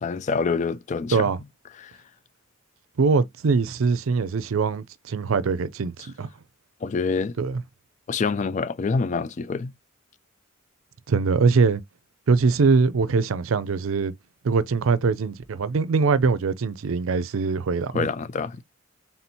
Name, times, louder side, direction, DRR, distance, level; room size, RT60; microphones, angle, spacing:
voice 1, 0.0-1.3 1.8-1.9 6.8-7.3 8.1-9.7 17.9-18.6, left 4 dB, 35° left, 0.3 m, -26 dB
voice 2, 3.0-6.3 7.4-7.6 11.1-11.8 12.3-14.1 14.4-18.1, right 4 dB, 80° right, 0.5 m, -22 dB
4.3 x 3.6 x 2.7 m
head